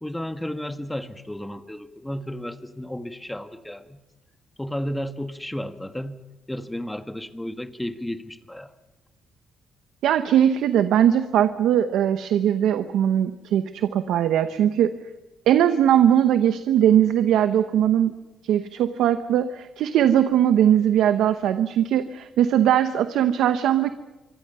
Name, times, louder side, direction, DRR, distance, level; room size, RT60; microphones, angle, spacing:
voice 1, 0.0-4.0 4.6-6.2 6.5-8.7, left 1 dB, 5° left, 9 dB, 1.5 m, -33 dB
voice 2, 10.0-14.9 15.5-18.1 18.5-23.9, right 10 dB, 85° right, 10 dB, 0.9 m, -20 dB
26.0 x 24.5 x 5.6 m, 1.1 s
cardioid pair, 90°, 0 cm